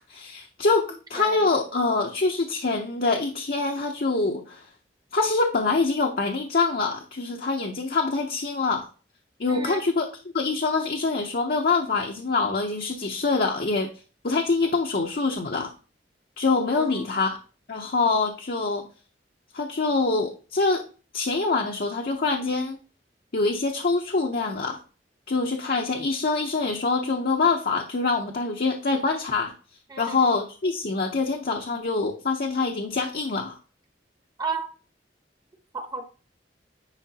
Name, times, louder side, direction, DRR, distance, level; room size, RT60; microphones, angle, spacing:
voice 1, 0.0-4.7 5.1-8.9 9.4-10.1 10.3-13.9 14.2-15.7 16.4-17.4 17.7-18.9 19.5-20.8 21.1-22.8 23.3-24.8 25.3-29.5 30.0-33.6, left 3 dB, 60° left, 0.7 m, -25 dB
voice 2, 9.5-9.8 16.7-17.1 29.9-30.3 34.4-34.7 35.7-36.0, right 4 dB, 25° right, 0.9 m, -33 dB
9.8 x 4.9 x 2.8 m
head